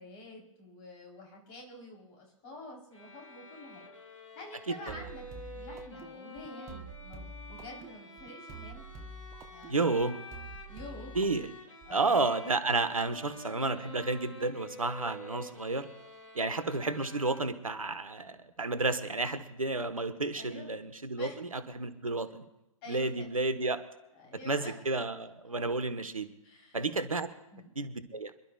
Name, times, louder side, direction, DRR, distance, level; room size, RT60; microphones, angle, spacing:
voice 1, 0.0-3.9 4.3-8.9 9.5-9.9 10.7-11.2 11.9-12.2 20.3-20.7 21.2-21.4 22.8-23.3 24.1-24.8 26.4-26.8 27.5-27.8, left 2 dB, 25° left, 0 dB, 3.8 m, -48 dB
sound 1, 2.9-17.9, left 1 dB, 60° left, 2.6 m, -49 dB
sound 2, 4.9-12.0, right 2 dB, 15° right, 1.0 m, -48 dB
voice 2, 9.7-10.2 11.1-11.5 11.9-15.9 16.3-22.4 22.9-23.8 24.4-26.3 26.7-27.3 27.7-28.3, right 3 dB, 70° right, 11 dB, 1.4 m, -31 dB
27.0 x 12.5 x 2.4 m, 0.95 s
figure-of-eight pair, 125°, 18 cm